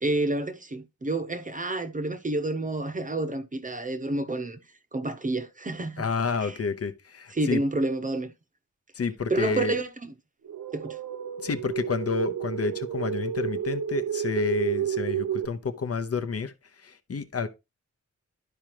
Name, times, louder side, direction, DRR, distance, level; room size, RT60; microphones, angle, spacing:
voice 1, 0.0-4.6 4.9-6.1 6.4-6.6 7.3-8.3 9.3-10.1 10.7-11.0, right 2 dB, 25° right, 0.7 m, -29 dB
voice 2, 6.0-7.6 8.9-9.8 11.4-17.5, left 4 dB, 50° left, 0.8 m, -29 dB
sound 1, 10.4-15.5, right 9 dB, 85° right, 0.9 m, -31 dB
12.0 x 5.0 x 3.0 m
wide cardioid pair, 175°, 31 cm